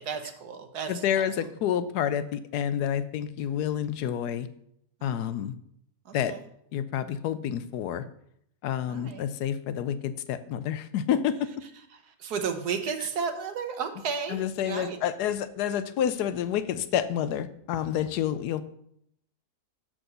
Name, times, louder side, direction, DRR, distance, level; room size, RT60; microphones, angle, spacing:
voice 1, 0.0-1.5 5.0-5.3 6.0-6.4 8.9-9.2 12.2-15.0, right 6 dB, 75° right, 7 dB, 1.5 m, -33 dB
voice 2, 0.9-4.5 5.0-5.5 6.1-6.3 6.7-8.0 8.6-11.5 14.3-18.6, left 9 dB, 80° left, 13 dB, 1.2 m, -29 dB
6.3 x 5.9 x 6.7 m, 0.72 s
omnidirectional pair, 1.7 m